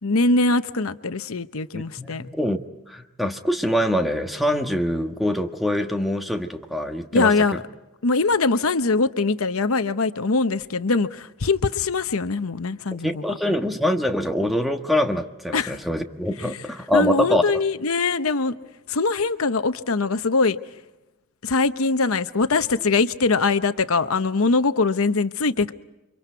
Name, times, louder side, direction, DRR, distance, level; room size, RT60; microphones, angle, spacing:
voice 1, 0.0-2.3 7.1-7.6 8.0-13.2 15.5-15.8 16.9-18.6 18.9-20.6 21.4-25.7, left 3 dB, 80° left, 0.9 m, -22 dB
voice 2, 1.7-2.6 2.9-7.3 13.0-17.5, left 1 dB, ahead, 1.4 m, -24 dB
29.5 x 25.0 x 4.6 m
head